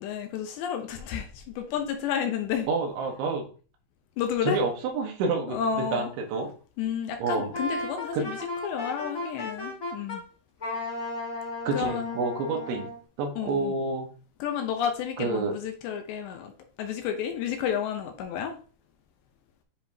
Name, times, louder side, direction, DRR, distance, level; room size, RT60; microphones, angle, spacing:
voice 1, 0.0-2.7 4.2-4.6 5.5-6.1 6.8-10.2 11.7-12.2 13.4-13.7 14.4-16.5 16.8-18.5, left 8 dB, 75° left, 5 dB, 2.8 m, -31 dB
voice 2, 2.7-3.5 4.4-6.5 7.2-7.5 8.1-8.3 11.7-12.9 13.2-14.1 15.2-15.5, right 4 dB, 75° right, 2 dB, 3.6 m, -28 dB
Wind instrument woodwind instrument, 7.5-10.2 10.6-13.0, left 2 dB, 55° left, 0.9 m, -35 dB
9.8 x 5.0 x 2.8 m, 0.38 s
omnidirectional pair, 5.5 m